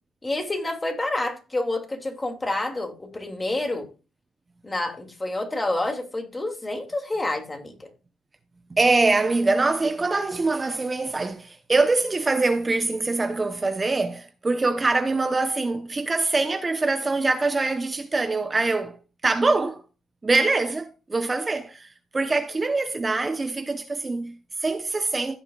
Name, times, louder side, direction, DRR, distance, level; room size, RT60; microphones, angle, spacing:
voice 1, 0.2-3.9 4.6-7.9, left 2 dB, 20° left, 2.4 m, -28 dB
voice 2, 8.7-18.9 19.2-19.8 20.2-25.4, right 3 dB, 25° right, 0.8 m, -24 dB
15.5 x 7.0 x 2.4 m
cardioid pair, 90°, 0 cm